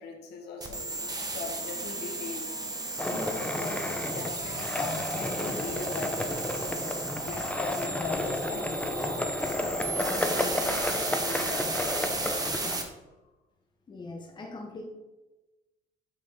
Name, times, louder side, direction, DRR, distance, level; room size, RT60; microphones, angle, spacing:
voice 1, 0.0-2.5 3.0-6.8 7.2-9.3 9.9-12.3, left 4 dB, 75° left, 2 dB, 1.5 m, -41 dB
sound 1, 0.6-12.8, right 2 dB, 20° right, 1.2 m, -34 dB
Skateboard, 3.0-12.8, left 1 dB, 5° left, 0.8 m, -32 dB
voice 2, 13.9-14.8, left 2 dB, 25° left, 0 dB, 1.2 m, -41 dB
8.5 x 5.2 x 3.8 m, 1.1 s
cardioid pair, 110°, 17 cm